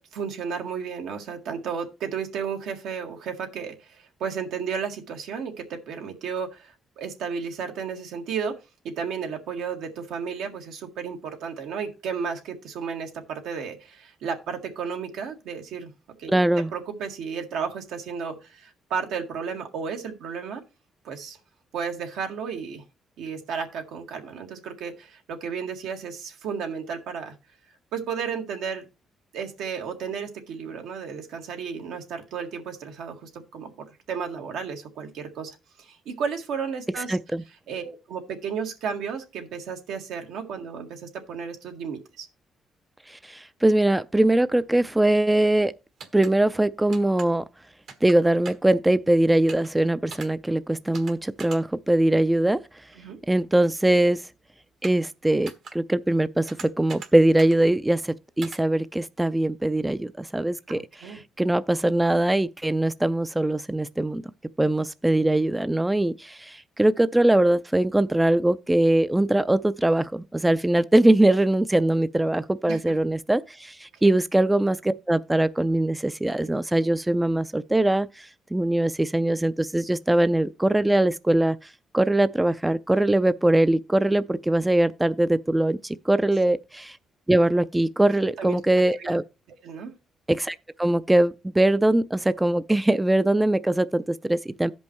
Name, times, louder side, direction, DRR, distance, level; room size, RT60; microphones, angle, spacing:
voice 1, 0.0-8.6 8.8-15.9 16.2-20.6 21.0-21.4 21.7-22.8 23.2-27.3 27.9-28.9 29.3-33.7 34.1-35.5 35.8-37.2 37.7-42.3 53.0-53.2 60.7-61.2 72.7-73.0 74.0-74.2 88.4-88.6 89.0-89.2 89.6-89.9, right 6 dB, 85° right, 1.7 m, -33 dB
voice 2, 16.3-16.7 37.1-37.4 43.1-45.7 46.1-47.5 48.0-52.6 53.3-54.2 54.8-64.2 64.6-87.0 87.3-89.2 90.3-94.7, right 1 dB, 10° right, 0.4 m, -22 dB
sound 1, 46.0-46.3 46.9-47.3 47.9-48.2 48.4-48.7 49.5-49.7 50.1-50.3 50.9-51.1 51.4-51.6 54.8-55.1 55.5-55.7 56.5-57.1 57.4-57.6 58.4-58.6, right 5 dB, 65° right, 1.4 m, -40 dB
16.0 x 5.4 x 3.0 m
cardioid pair, 90°, 0 cm